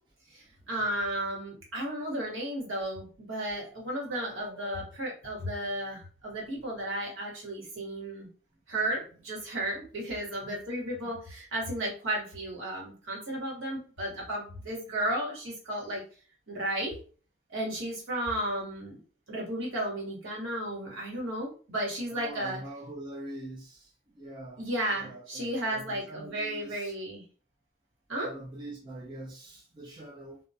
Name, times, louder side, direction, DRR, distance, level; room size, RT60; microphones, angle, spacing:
voice 1, 0.3-8.3 8.7-16.0 16.5-16.9 17.5-19.0 19.3-22.6 24.6-27.2 28.1-28.3, right 1 dB, 70° right, 1.1 m, -34 dB
voice 2, 4.1-4.8 8.8-9.2 10.4-10.6 11.0-11.2 22.1-23.9 24.2-24.7 24.9-26.9 28.2-30.4, right 1 dB, 20° right, 0.4 m, -44 dB
2.2 x 2.1 x 2.6 m
head